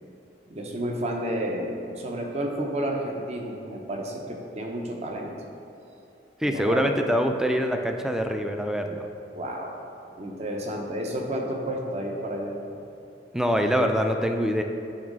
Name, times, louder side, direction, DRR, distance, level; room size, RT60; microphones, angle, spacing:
voice 1, 0.5-5.3 6.4-6.9 9.3-9.8 10.2-12.6, right 1 dB, 40° right, 1 dB, 0.8 m, -31 dB
voice 2, 6.4-9.1 13.3-14.6, equal, 5° right, 5 dB, 0.3 m, -24 dB
8.8 x 3.1 x 5.2 m, 2.7 s
head